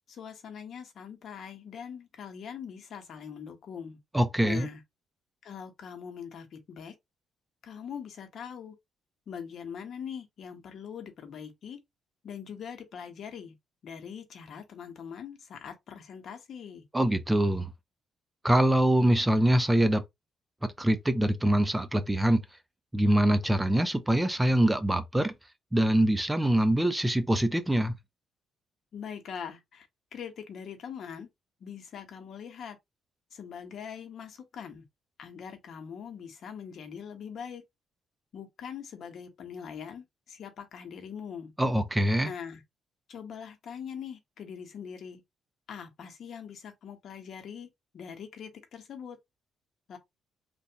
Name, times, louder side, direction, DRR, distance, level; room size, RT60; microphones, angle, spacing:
voice 1, 0.1-4.0 4.4-4.8 5.4-6.9 7.6-8.7 9.3-11.8 12.2-13.5 13.8-16.8 28.9-31.3 31.6-32.8 33.3-34.8 35.2-37.6 38.3-41.5 42.2-42.6 43.1-45.2 45.7-47.7 47.9-49.2 49.9-50.0, left 7 dB, 60° left, 1.0 m, -42 dB
voice 2, 4.1-4.7 16.9-17.7 18.4-20.0 20.8-22.4 22.9-25.3 25.7-27.9 41.6-42.3, right 1 dB, 10° right, 0.5 m, -24 dB
3.3 x 2.5 x 2.8 m
cardioid pair, 90°, 0 cm